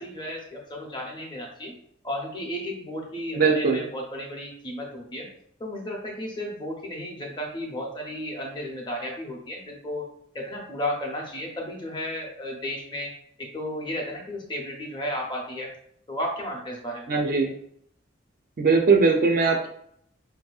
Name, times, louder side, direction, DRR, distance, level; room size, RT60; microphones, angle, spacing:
voice 1, 0.0-1.8 2.0-5.3 5.6-10.1 10.3-13.1 13.4-15.7 16.1-17.1, left 1 dB, 25° left, 0 dB, 0.7 m, -33 dB
voice 2, 3.3-3.8 17.1-17.5 18.6-19.7, right 4 dB, 45° right, 2 dB, 0.4 m, -20 dB
4.6 x 2.6 x 2.3 m, 0.69 s
head